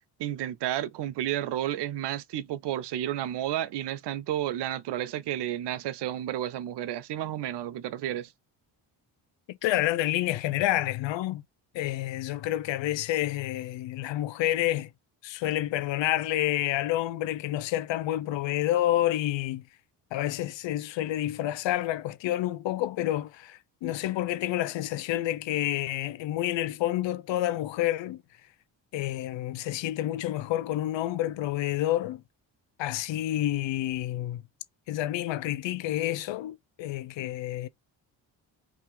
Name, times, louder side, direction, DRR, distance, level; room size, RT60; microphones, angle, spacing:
voice 1, 0.2-8.3, right 12 dB, 65° right, 0.6 m, -31 dB
voice 2, 9.5-11.4 11.7-14.9 15.2-19.6 20.1-28.2 28.9-32.2 32.8-34.4 34.9-37.7, left 14 dB, 80° left, 0.7 m, -29 dB
3.6 x 2.6 x 4.6 m
cardioid pair, 65°, 44 cm